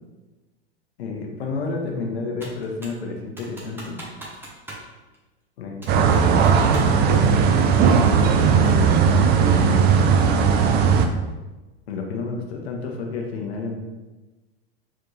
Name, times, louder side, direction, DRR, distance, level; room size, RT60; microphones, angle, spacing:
voice 1, 1.0-4.0 5.6-10.4 11.9-13.8, left 3 dB, 75° left, 1 dB, 1.1 m, -31 dB
Computer keyboard, 2.4-3.0 3.4-4.9 5.1-5.2 5.8-7.0 7.3-8.9, right 1 dB, 5° right, 1.1 m, -41 dB
sound 1, 5.9-11.1, right 6 dB, 30° right, 0.4 m, -17 dB
4.8 x 3.5 x 3.2 m, 1.1 s
hypercardioid pair, 100°, 32 cm